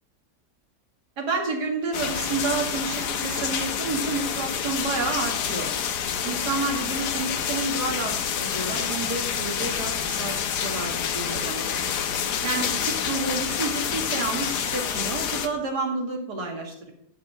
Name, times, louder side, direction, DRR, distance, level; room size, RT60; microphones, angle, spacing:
voice 1, 1.2-5.7 6.2-8.1 8.4-10.3 10.6-11.7 12.4-16.9, right 3 dB, 75° right, 0 dB, 2.8 m, -30 dB
sound 1, 1.9-15.5, left 7 dB, 75° left, 1.4 m, -28 dB
12.0 x 5.0 x 7.5 m, 0.75 s
omnidirectional pair, 1.8 m